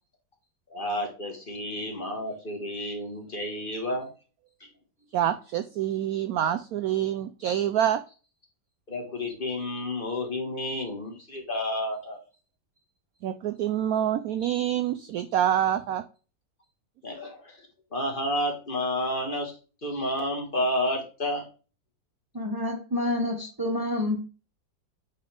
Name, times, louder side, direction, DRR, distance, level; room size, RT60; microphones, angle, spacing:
voice 1, 0.7-4.1 8.9-12.2 17.0-17.7 17.9-21.4, left 1 dB, 30° left, 2 dB, 1.6 m, -30 dB
voice 2, 5.1-8.0 13.2-16.0, right 10 dB, 75° right, 10 dB, 0.8 m, -26 dB
voice 3, 22.3-24.2, left 1 dB, 30° right, 1 dB, 0.4 m, -28 dB
9.4 x 4.1 x 3.4 m, 0.35 s
omnidirectional pair, 2.0 m